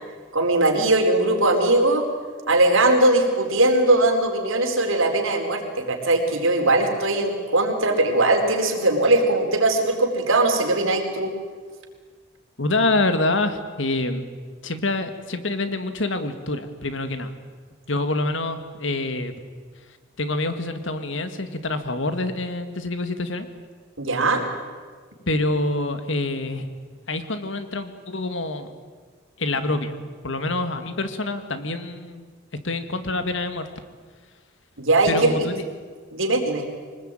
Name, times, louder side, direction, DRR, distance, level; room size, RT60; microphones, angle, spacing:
voice 1, 0.3-2.0 2.5-5.6 5.9-11.3 24.0-24.4 34.8-35.3 36.1-36.6, right 2 dB, 85° right, 3 dB, 4.3 m, -20 dB
voice 2, 12.6-14.3 14.6-17.3 17.9-19.3 20.2-23.5 25.3-26.7 27.1-28.7 29.4-30.0 30.2-32.3 32.6-33.7 35.1-35.6, left 2 dB, 70° left, 9 dB, 2.0 m, -26 dB
24.5 x 19.5 x 9.1 m, 1.5 s
head